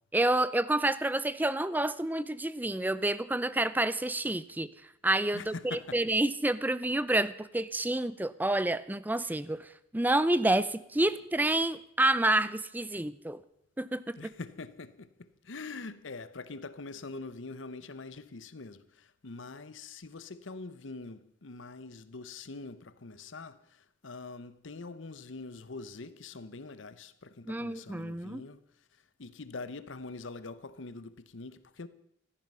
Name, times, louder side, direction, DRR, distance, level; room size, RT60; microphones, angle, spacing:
voice 1, 0.1-4.7 5.0-13.4 13.8-14.3 27.5-28.5, right 1 dB, 10° right, 0.5 m, -29 dB
voice 2, 5.3-6.0 14.2-28.6 29.2-31.9, left 3 dB, 90° left, 0.9 m, -44 dB
15.5 x 13.0 x 5.5 m
head